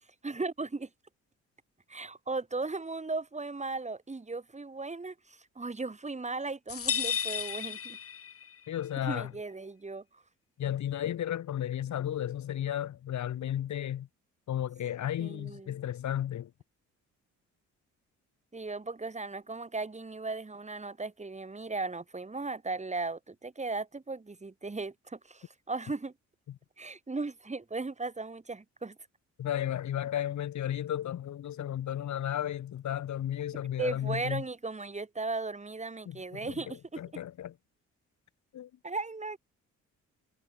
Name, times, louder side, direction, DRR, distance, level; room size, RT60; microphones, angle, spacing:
voice 1, 0.2-0.9 1.9-8.0 9.0-10.2 15.2-15.7 18.5-26.1 26.8-29.0 33.8-37.0 38.8-39.4, right 3 dB, 25° right, 6.8 m, -37 dB
sound 1, 6.7-8.6, left 8 dB, 50° left, 2.6 m, -33 dB
voice 2, 8.7-9.3 10.6-14.1 14.5-16.5 29.4-34.4 36.1-36.2 36.4-37.5 38.5-38.7, left 11 dB, 70° left, 4.5 m, -33 dB
cardioid pair, 90°, 30 cm